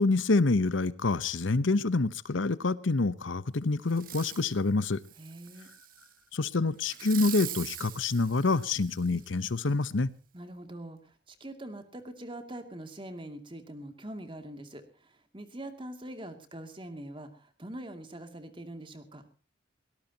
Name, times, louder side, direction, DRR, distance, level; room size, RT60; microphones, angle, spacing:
voice 1, 0.0-5.0 6.3-10.1, left 3 dB, 85° left, 16 dB, 0.9 m, -27 dB
Fireworks, 3.9-4.5 5.0-6.1 6.9-9.3 9.8-9.9, right 12 dB, 45° right, 1.6 m, -42 dB
voice 2, 5.2-5.7 10.3-19.2, right 1 dB, 25° right, 7 dB, 2.4 m, -43 dB
22.5 x 19.0 x 2.9 m, 0.35 s
head